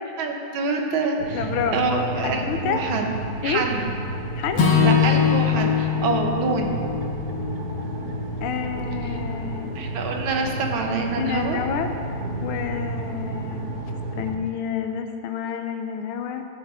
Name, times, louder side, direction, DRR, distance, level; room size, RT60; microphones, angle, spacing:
voice 1, 0.2-3.9 4.8-6.8 9.8-11.6, right 3 dB, 75° right, 2 dB, 1.8 m, -26 dB
sound 1, 1.2-14.3, right 2 dB, 55° right, 1.4 m, -31 dB
voice 2, 1.3-1.9 2.2-2.9 3.4-3.7 4.3-4.7 8.4-9.6 11.2-11.9 12.4-13.6 14.1-16.5, left 7 dB, 85° left, 7 dB, 1.5 m, -29 dB
Acoustic guitar / Strum, 4.5-8.9, left 7 dB, 65° left, 1.8 m, -23 dB
12.5 x 7.2 x 3.7 m, 2.5 s
omnidirectional pair, 2.3 m